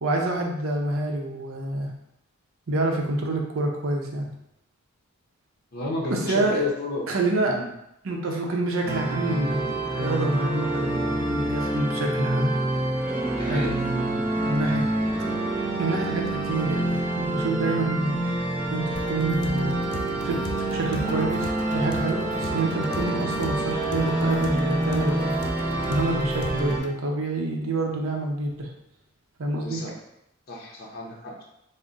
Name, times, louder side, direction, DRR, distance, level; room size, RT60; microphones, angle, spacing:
voice 1, 0.0-1.9 2.7-4.3 6.1-6.6 7.1-7.6 8.0-12.5 13.4-14.9 15.8-18.1 18.7-19.7 20.2-25.4 25.9-28.7 29.4-29.8, right 2 dB, 65° right, 1 dB, 0.7 m, -27 dB
voice 2, 5.7-7.0 7.5-7.7 13.3-13.8 17.6-17.8 29.5-30.0 30.5-31.4, left 2 dB, 45° left, -2 dB, 0.7 m, -32 dB
sound 1, 8.8-26.8, right 1 dB, 10° right, 0.5 m, -27 dB
sound 2, 18.9-26.9, left 3 dB, 85° left, 0.5 m, -38 dB
3.7 x 2.1 x 3.9 m, 0.82 s
head